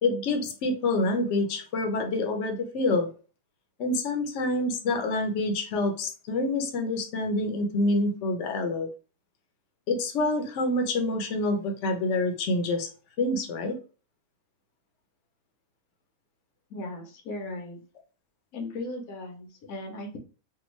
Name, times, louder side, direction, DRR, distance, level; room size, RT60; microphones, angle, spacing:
voice 1, 0.0-3.1 3.8-8.9 9.9-12.9 13.2-13.8, left 2 dB, 65° left, 4 dB, 0.9 m, -27 dB
voice 2, 16.7-17.8 18.5-20.2, left 2 dB, 85° left, 3 dB, 1.3 m, -37 dB
3.4 x 2.2 x 3.1 m, 0.35 s
omnidirectional pair, 1.4 m